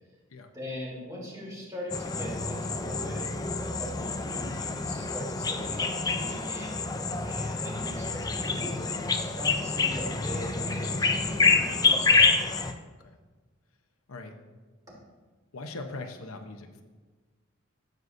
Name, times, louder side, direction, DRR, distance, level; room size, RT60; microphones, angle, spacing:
voice 1, 0.5-3.3 3.6-6.8 7.2-12.4, equal, 15° right, -6 dB, 3.3 m, -40 dB
sound 1, 1.9-12.7, left 4 dB, 20° left, 0.4 m, -27 dB
voice 2, 15.5-16.8, left 2 dB, 90° left, 5 dB, 0.9 m, -40 dB
14.5 x 7.9 x 2.6 m, 1.3 s
head